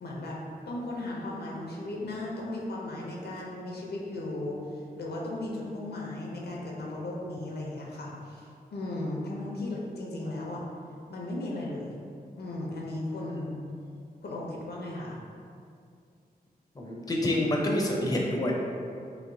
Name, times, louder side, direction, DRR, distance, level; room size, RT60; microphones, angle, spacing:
voice 1, 0.0-10.6 11.1-12.0 12.4-13.6 14.2-15.2, left 1 dB, 80° left, -3 dB, 0.5 m, -36 dB
voice 2, 16.8-18.5, left 1 dB, 25° left, -1 dB, 0.5 m, -27 dB
3.0 x 2.9 x 2.6 m, 2.3 s
cardioid pair, 50°, 17 cm